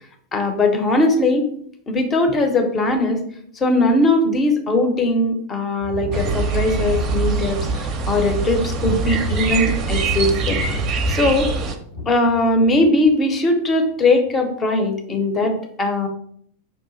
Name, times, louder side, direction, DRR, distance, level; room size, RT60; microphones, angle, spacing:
voice 1, 0.3-1.5 1.9-3.2 3.5-10.6 11.1-11.5 12.1-16.1, left 2 dB, 20° left, 5 dB, 0.7 m, -19 dB
Thunder, 5.8-13.1 14.3-14.4, left 1 dB, 85° left, 1.8 m, -33 dB
sound 1, 6.1-11.8, right 4 dB, 35° right, 0.5 m, -23 dB
5.6 x 2.5 x 3.8 m, 0.64 s
figure-of-eight pair, 90°, 0 cm